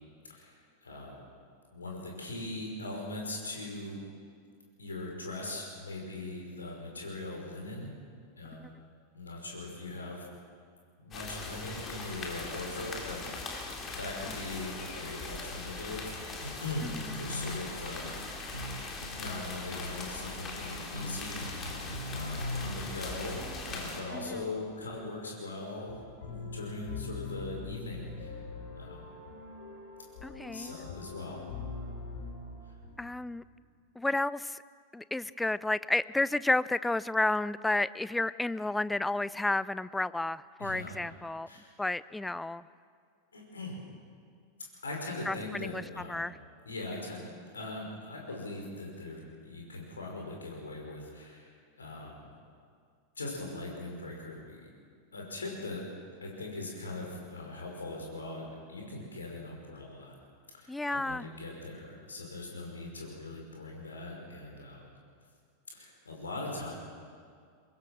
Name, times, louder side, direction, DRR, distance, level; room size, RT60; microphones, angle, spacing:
voice 1, 0.3-1.2 1.7-4.0 4.8-7.9 8.4-8.7 9.1-10.3 11.0-18.1 19.1-21.8 22.1-23.4 23.7-26.0 26.2-28.4 28.7-29.1 30.2-31.4 32.6-32.7 40.6-41.0 41.5-41.7 43.3-43.8 44.8-46.3 46.6-47.2 47.5-52.3 53.2-54.6 55.1-55.8 56.2-60.1 60.5-64.9 65.7-66.7, left 2 dB, 75° left, -1 dB, 5.5 m, -40 dB
sound 1, 11.1-24.0, left 3 dB, 25° left, 3.9 m, -41 dB
voice 2, 16.8-17.2 24.1-24.5 30.2-30.7 33.0-33.4 34.0-34.6 34.9-41.5 41.8-42.7 45.3-45.8 46.1-46.4 60.7-61.3, left 2 dB, 5° left, 18 dB, 0.5 m, -31 dB
sound 2, 17.1-22.8, left 1 dB, 90° left, 1.5 m, -40 dB
sound 3, 21.5-33.6, left 4 dB, 55° left, 4.9 m, -44 dB
23.5 x 21.5 x 6.2 m, 2.2 s
figure-of-eight pair, 90°, 0 cm